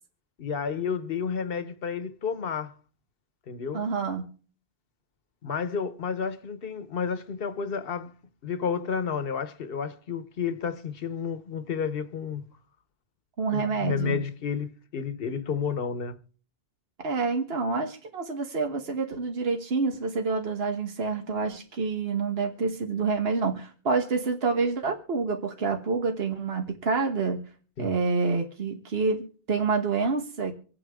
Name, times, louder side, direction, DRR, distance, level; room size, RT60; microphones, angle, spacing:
voice 1, 0.4-2.7 3.5-3.8 5.4-8.1 8.4-12.4 13.5-16.2 27.8-28.0, left 6 dB, 65° left, 1.2 m, -31 dB
voice 2, 3.7-4.3 13.4-14.2 17.0-27.4 27.8-30.5, right 4 dB, 70° right, 1.5 m, -27 dB
25.5 x 8.7 x 3.6 m
omnidirectional pair, 1.0 m